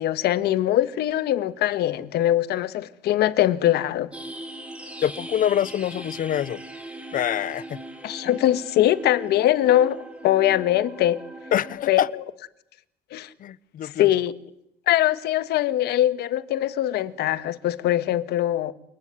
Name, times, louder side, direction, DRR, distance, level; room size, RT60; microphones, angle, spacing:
voice 1, 0.0-4.1 8.0-11.2 11.9-12.2 13.1-13.3 13.8-14.3 14.9-18.7, left 13 dB, 75° left, 1.7 m, -22 dB
sound 1, 4.1-11.8, right 1 dB, 5° right, 5.4 m, -39 dB
voice 2, 5.0-6.6 7.1-7.8 11.5-12.1 13.4-14.1, left 10 dB, 55° left, 1.0 m, -25 dB
28.5 x 19.5 x 9.7 m
cardioid pair, 110°, 17 cm